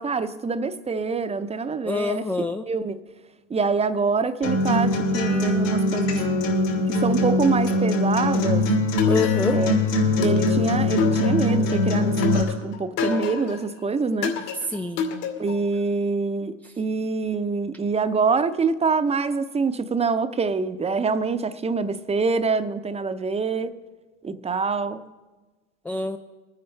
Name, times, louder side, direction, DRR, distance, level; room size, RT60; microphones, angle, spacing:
voice 1, 0.0-2.3 2.7-3.0 3.5-6.2 6.9-8.6 9.5-9.8 10.2-14.4 15.4-23.7 24.2-25.0, right 4 dB, 15° right, 0.7 m, -25 dB
voice 2, 1.8-2.6 9.0-9.6 14.7-15.1 25.9-26.2, left 3 dB, 5° left, 0.3 m, -26 dB
Acoustic guitar, 4.4-12.4, left 1 dB, 80° left, 4.6 m, -22 dB
sound 1, 9.0-9.7 10.2-11.7 12.2-13.6 14.2-15.7, left 5 dB, 65° left, 2.7 m, -28 dB
24.5 x 9.7 x 3.4 m
hypercardioid pair, 95°, 39 cm